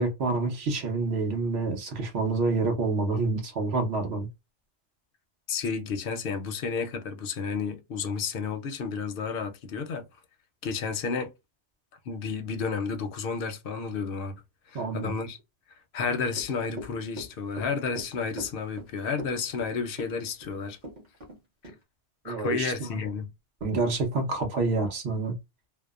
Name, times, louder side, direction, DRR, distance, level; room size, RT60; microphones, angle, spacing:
voice 1, 0.0-4.3 14.7-15.1 22.2-23.0 23.6-25.3, right 3 dB, 65° right, 1.1 m, -28 dB
voice 2, 5.5-10.1 10.6-11.3 12.1-14.4 14.7-15.4 15.9-20.8 22.2-23.3, left 5 dB, 60° left, 0.7 m, -31 dB
Run / Walk footsteps, 16.3-21.4 21.6-21.8, equal, 40° right, 1.1 m, -41 dB
2.7 x 2.0 x 2.3 m
omnidirectional pair, 1.2 m